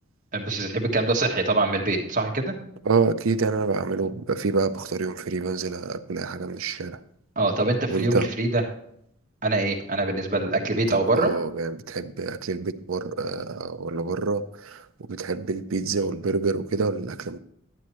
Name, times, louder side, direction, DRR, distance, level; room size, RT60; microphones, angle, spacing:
voice 1, 0.3-2.5 7.4-8.6 9.4-11.3, right 2 dB, 40° right, 1 dB, 1.5 m, -24 dB
voice 2, 2.8-7.0 7.9-8.3 10.9-17.4, right 4 dB, 70° right, 11 dB, 0.6 m, -27 dB
11.5 x 8.5 x 3.1 m, 0.71 s
head